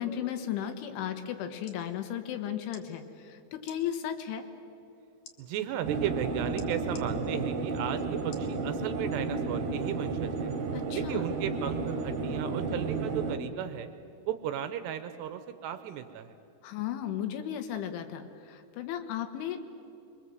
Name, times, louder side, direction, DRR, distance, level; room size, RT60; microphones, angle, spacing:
voice 1, 0.0-4.5 10.7-11.2 16.6-19.6, left 10 dB, 80° left, 7 dB, 3.7 m, -35 dB
sound 1, 1.6-1.8 2.7-2.9 3.6-3.8 5.2-5.4 6.6-7.1 8.3-8.5 9.1-9.2, left 6 dB, 55° left, 2.7 m, -50 dB
voice 2, 5.4-10.5 11.0-13.9 14.3-16.4, right 10 dB, 80° right, 9 dB, 2.6 m, -35 dB
sound 2, 5.8-13.4, right 4 dB, 55° right, 2.6 m, -32 dB
25.5 x 23.0 x 8.0 m, 2.6 s
omnidirectional pair, 5.6 m